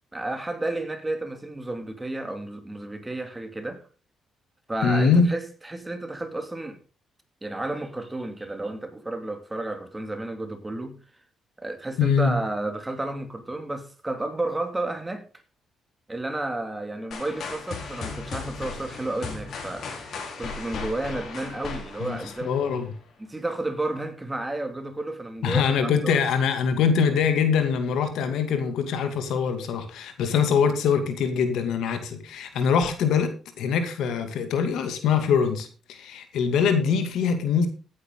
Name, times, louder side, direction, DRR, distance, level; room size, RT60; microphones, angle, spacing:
voice 1, 0.1-3.8 4.7-6.8 7.4-11.0 11.6-15.2 16.1-19.9 20.4-22.5 23.2-26.2, right 2 dB, 15° right, 2.5 m, -32 dB
voice 2, 4.8-5.3 12.0-12.4 22.0-22.9 25.4-37.7, left 6 dB, 80° left, 2.5 m, -23 dB
sound 1, 17.1-23.0, left 4 dB, 60° left, 4.1 m, -36 dB
15.5 x 9.4 x 3.9 m
cardioid pair, 90°, 0 cm